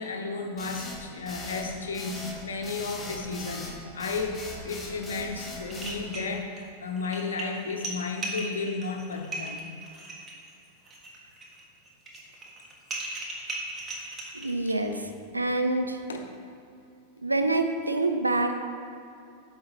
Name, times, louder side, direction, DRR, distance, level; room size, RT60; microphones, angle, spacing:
voice 1, 0.0-9.6 15.0-15.1 16.1-16.3, left 4 dB, 70° left, 4 dB, 0.9 m, -33 dB
sound 1, 0.6-6.0, left 2 dB, 15° left, 1.4 m, -40 dB
sound 2, 5.3-5.4 5.7-6.6 7.0-14.9, right 2 dB, 20° right, 1.4 m, -38 dB
voice 2, 14.3-16.0 17.2-18.6, right 2 dB, 85° right, 6 dB, 0.6 m, -27 dB
8.7 x 6.2 x 3.9 m, 2.6 s
figure-of-eight pair, 90°, 0 cm